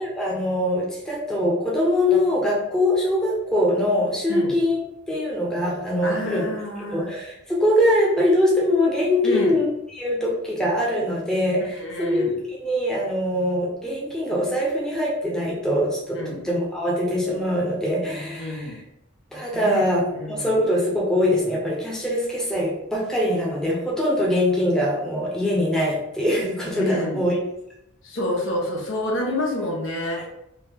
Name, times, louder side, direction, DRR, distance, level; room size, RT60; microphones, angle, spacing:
voice 1, 0.0-6.5 6.9-18.8 19.3-27.4 30.2-30.3, left 1 dB, 5° left, -4 dB, 0.7 m, -23 dB
voice 2, 6.0-7.1 9.2-9.6 11.7-12.3 16.1-16.4 18.4-18.8 19.5-19.8 20.1-20.5 26.7-27.2 28.0-30.2, left 1 dB, 75° left, -1 dB, 1.0 m, -28 dB
3.5 x 2.7 x 3.5 m, 0.81 s
head